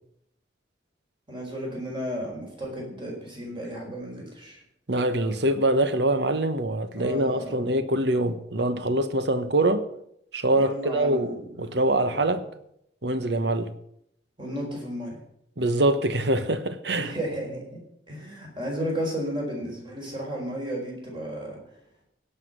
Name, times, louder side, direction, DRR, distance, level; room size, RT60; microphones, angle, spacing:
voice 1, 1.3-4.6 6.9-7.7 10.5-12.3 14.4-15.2 17.0-17.8 18.1-21.6, equal, 25° right, 4.7 m, -33 dB
voice 2, 4.9-9.9 10.3-12.4 13.0-13.7 15.6-17.1, right 1 dB, 65° right, 1.1 m, -24 dB
17.0 x 5.8 x 8.1 m
head